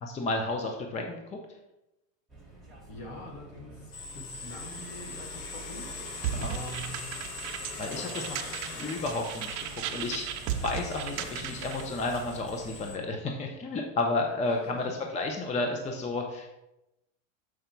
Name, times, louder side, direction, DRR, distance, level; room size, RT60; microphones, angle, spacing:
voice 1, 0.0-1.2 6.3-6.6 7.8-8.4 8.8-14.8 15.1-16.5, left 2 dB, 15° left, 2 dB, 0.6 m, -32 dB
sound 1, 2.3-13.0, right 3 dB, ahead, 1.5 m, -49 dB
voice 2, 2.9-5.9 6.5-7.1 7.9-8.8 14.4-14.8, left 1 dB, 55° left, 0 dB, 2.3 m, -44 dB
sound 2, 3.9-13.0, left 3 dB, 40° left, 1.4 m, -42 dB
sound 3, 6.2-11.9, right 10 dB, 50° right, 0.7 m, -36 dB
6.8 x 4.9 x 4.5 m, 0.92 s
supercardioid pair, 135°, 40 cm